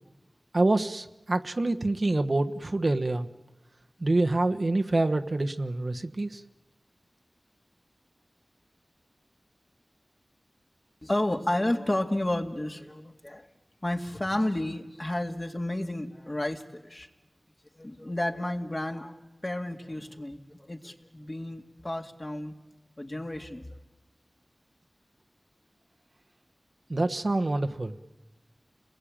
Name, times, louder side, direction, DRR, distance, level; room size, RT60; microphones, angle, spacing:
voice 1, 0.5-3.3 4.0-6.4 26.9-27.9, right 2 dB, 55° right, 6 dB, 1.2 m, -26 dB
voice 2, 11.0-13.5 13.8-17.1 17.8-19.2 19.4-22.5 23.0-23.8, left 1 dB, 35° left, 4 dB, 2.3 m, -31 dB
30.0 x 20.5 x 8.9 m, 1.2 s
wide cardioid pair, 45°, 0 cm